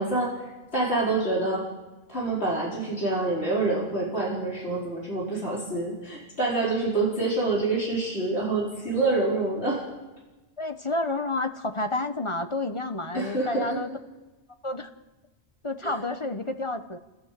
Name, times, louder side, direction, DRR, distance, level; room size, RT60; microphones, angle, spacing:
voice 1, 0.0-1.7 2.1-9.8 13.1-13.8 15.8-15.9, right 2 dB, 70° left, -5 dB, 5.2 m, -27 dB
voice 2, 10.6-13.9 14.6-14.9 15.6-17.0, left 2 dB, 30° left, 7 dB, 1.0 m, -30 dB
30.0 x 14.0 x 7.6 m, 1.2 s
omnidirectional pair, 1.1 m